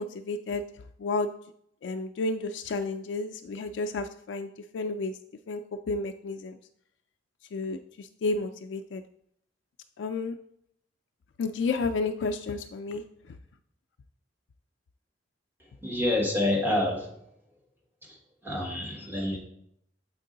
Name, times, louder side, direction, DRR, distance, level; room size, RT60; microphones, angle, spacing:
voice 1, 0.0-1.3 1.8-5.2 5.5-5.6 5.9-6.6 7.5-9.0 10.0-10.4 11.4-13.4, left 3 dB, 80° left, 6 dB, 0.3 m, -32 dB
voice 2, 15.8-17.1 18.1-18.2 18.4-19.4, left 1 dB, 10° right, 0 dB, 1.3 m, -27 dB
7.3 x 4.5 x 3.8 m, 0.71 s
head